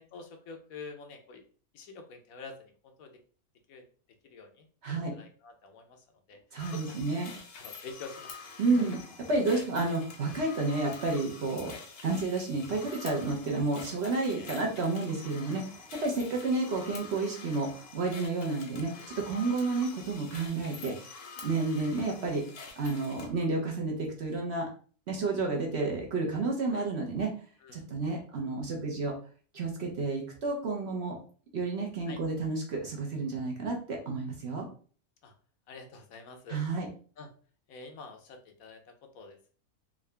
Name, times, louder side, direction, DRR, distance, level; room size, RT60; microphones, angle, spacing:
voice 1, 0.0-1.4 1.7-3.1 3.7-3.8 4.3-6.4 6.7-7.0 7.6-8.4 8.8-8.9 9.5-9.6 11.7-11.8 13.3-13.5 13.9-14.0 14.3-14.7 19.4-19.5 26.7-26.8 27.6-27.9 32.1-32.2 35.2-35.3 35.7-36.6 37.2-37.3 37.7-39.5, left 4 dB, 75° left, 5 dB, 1.1 m, -47 dB
voice 2, 4.8-5.1 6.5-7.3 8.6-9.0 9.3-11.7 12.0-21.2 21.4-22.4 22.8-24.7 25.1-27.3 27.7-29.1 29.5-31.2 31.5-34.7 36.5-36.9, right 3 dB, 55° right, 0 dB, 0.9 m, -31 dB
sound 1, 6.6-23.3, left 5 dB, 90° left, 1.4 m, -47 dB
3.7 x 2.4 x 3.2 m, 0.42 s
omnidirectional pair, 1.6 m